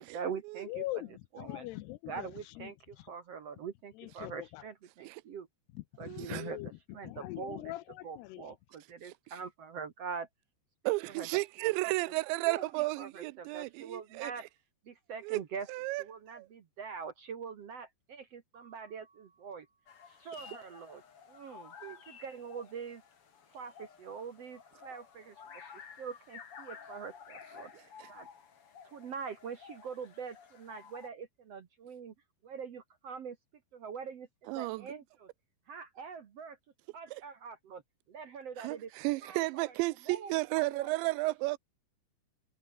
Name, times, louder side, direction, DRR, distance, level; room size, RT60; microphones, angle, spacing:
voice 1, 0.0-1.0 1.3-1.7 2.1-5.5 6.0-6.6 6.9-7.7 8.0-10.3 10.8-11.4 12.0-14.4 14.8-15.7 16.0-19.7 20.1-21.0 21.3-21.7 22.1-23.0 23.5-27.7 28.1-28.3 28.8-32.1 32.4-33.4 33.7-35.3 35.7-36.6 36.9-37.8 38.1-38.9 39.2-39.7 40.1-40.9, right 6 dB, 65° right, 1.6 m, -44 dB
voice 2, 0.7-2.3 2.6-2.7 4.0-4.6 5.8-6.7 7.0-8.4, left 17 dB, 80° left, 2.6 m, -41 dB
voice 3, 6.0-6.4 10.9-14.3 15.2-15.4 15.7-16.0 16.3-16.5 21.8-22.0 34.5-34.8 38.6-41.6, right 22 dB, 85° right, 2.9 m, -33 dB
Mallet percussion, 18.5-20.3, right 4 dB, 40° right, 6.8 m, -66 dB
sound 1, 19.9-31.1, left 7 dB, 40° left, 2.5 m, -53 dB
omnidirectional pair, 5.1 m